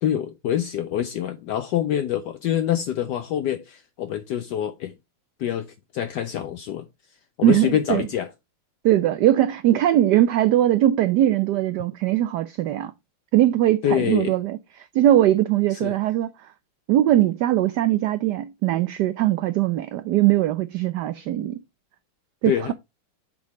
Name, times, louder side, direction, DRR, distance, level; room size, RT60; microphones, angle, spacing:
voice 1, 0.0-4.9 5.4-6.8 7.4-8.3 13.8-14.3 15.7-16.0 22.4-22.7, left 10 dB, 75° left, 0.9 m, -26 dB
voice 2, 7.4-8.0 8.8-12.9 13.3-16.3 16.9-21.6 22.4-22.7, right 13 dB, 85° right, 0.9 m, -20 dB
7.3 x 3.8 x 4.7 m
omnidirectional pair, 2.3 m